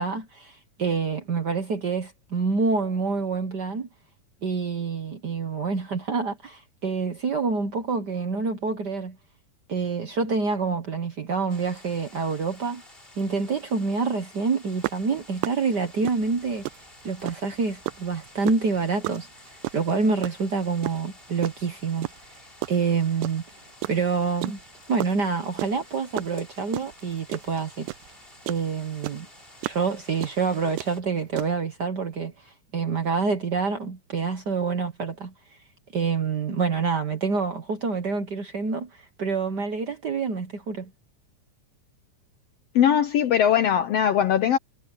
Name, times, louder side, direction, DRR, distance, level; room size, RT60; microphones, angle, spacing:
voice 1, 0.0-3.9 4.4-9.2 9.7-12.8 13.2-16.6 17.0-19.3 19.7-22.1 22.7-23.4 23.9-24.6 24.9-27.9 28.5-29.3 29.6-35.3 35.9-38.9 39.2-40.9, right 4 dB, 60° right, 1.0 m, -27 dB
sound 1, 11.5-31.0, left 2 dB, 15° left, 3.9 m, -51 dB
sound 2, 14.8-17.5 17.8-21.6 22.0-23.5 23.8-28.7 29.0-31.5, right 20 dB, 85° right, 2.1 m, -33 dB
voice 2, 42.7-44.6, left 9 dB, 75° left, 1.5 m, -20 dB
omnidirectional pair, 3.7 m